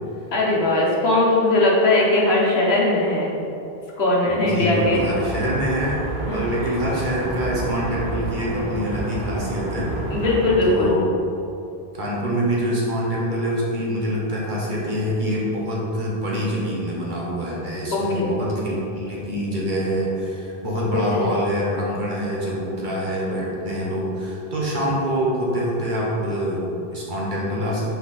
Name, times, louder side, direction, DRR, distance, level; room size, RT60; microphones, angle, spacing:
voice 1, 0.3-3.3 4.0-5.1 6.3-6.8 10.1-11.0 17.9-18.3 20.9-21.3, left 2 dB, 80° left, -4 dB, 1.4 m, -20 dB
voice 2, 4.2-6.0 6.3-9.9 10.6-11.1 11.9-28.0, equal, 50° right, -5 dB, 1.4 m, -25 dB
sound 1, 4.8-10.6, right 1 dB, 80° right, 1.1 m, -30 dB
5.9 x 4.5 x 4.1 m, 2.8 s
omnidirectional pair, 1.0 m